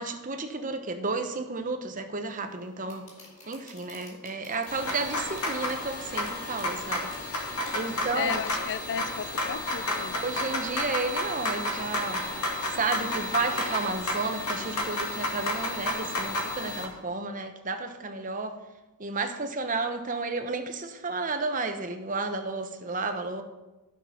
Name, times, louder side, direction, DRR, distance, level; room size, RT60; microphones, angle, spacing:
voice 1, 0.0-3.0 3.5-7.1 7.7-8.4 10.1-12.2 12.7-18.6 19.0-23.4, right 3 dB, 35° right, 6 dB, 0.9 m, -32 dB
sound 1, 2.2-10.8, left 2 dB, 35° left, 4.0 m, -53 dB
sound 2, 4.7-16.8, left 1 dB, 90° left, 2.1 m, -31 dB
voice 2, 8.1-10.2, left 7 dB, 55° left, 17 dB, 0.4 m, -34 dB
12.5 x 5.9 x 5.8 m, 1.1 s
head